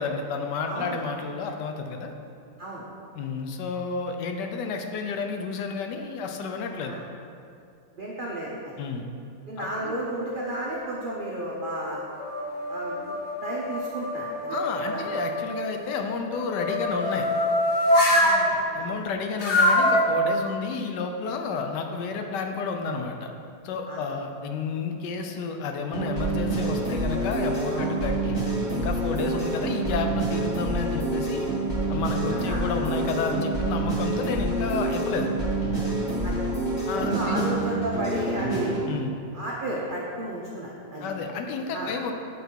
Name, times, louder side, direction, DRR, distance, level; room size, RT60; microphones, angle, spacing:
voice 1, 0.0-2.1 3.1-7.0 8.8-9.1 9.6-10.0 14.5-17.3 18.7-23.3 23.6-28.4 28.7-31.5 31.9-35.3 36.9-37.5 38.9-39.1 41.0-42.1, left 4 dB, 75° left, 4 dB, 1.2 m, -31 dB
voice 2, 0.6-1.0 2.6-2.8 6.8-7.0 8.0-8.7 9.5-12.0 12.7-13.1 13.4-14.6 14.8-15.0 18.1-18.9 23.9-24.0 27.7-27.9 32.3-32.9 36.2-36.4 36.9-38.8 39.3-41.1 41.7-41.9, right 1 dB, 75° right, -4 dB, 0.4 m, -33 dB
sound 1, 10.0-10.9 11.5-15.4 16.2-18.4 19.4-20.0, left 1 dB, 45° left, 1.0 m, -25 dB
sound 2, 25.9-38.8, right 2 dB, 25° left, 1.7 m, -27 dB
8.1 x 4.1 x 4.4 m, 2.5 s
omnidirectional pair, 2.0 m